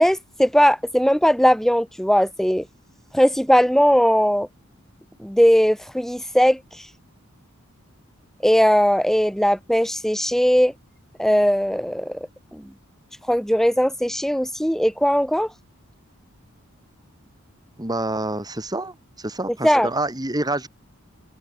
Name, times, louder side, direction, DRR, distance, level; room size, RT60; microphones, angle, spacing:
voice 1, 0.0-2.6 3.1-4.5 5.2-6.6 8.4-10.7 11.2-12.7 13.3-15.5 19.6-19.9, equal, ahead, 4.8 m, -19 dB
voice 2, 17.8-20.7, right 2 dB, 20° right, 3.8 m, -27 dB
head